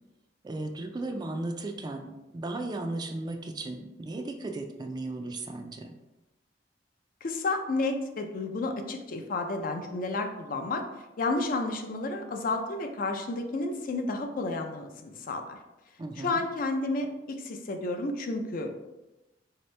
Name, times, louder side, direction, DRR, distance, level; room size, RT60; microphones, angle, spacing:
voice 1, 0.4-6.0 16.0-16.4, right 2 dB, 25° right, 5 dB, 0.3 m, -36 dB
voice 2, 7.2-10.9 11.2-15.6 16.2-18.7, left 2 dB, 50° left, 5 dB, 0.4 m, -31 dB
4.3 x 2.8 x 3.2 m, 1.0 s
head